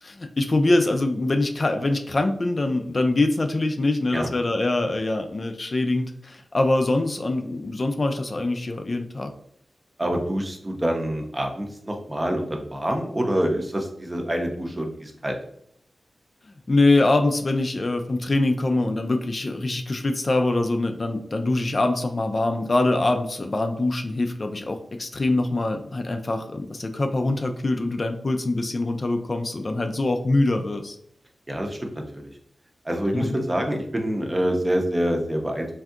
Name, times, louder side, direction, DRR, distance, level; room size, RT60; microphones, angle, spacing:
voice 1, 0.0-9.3 16.7-31.0 33.1-33.4, left 2 dB, 45° left, 5 dB, 0.3 m, -24 dB
voice 2, 10.0-15.4 31.5-32.3 32.8-35.7, equal, 25° right, 2 dB, 0.6 m, -26 dB
3.4 x 2.6 x 2.4 m, 0.69 s
wide cardioid pair, 70°, 0 cm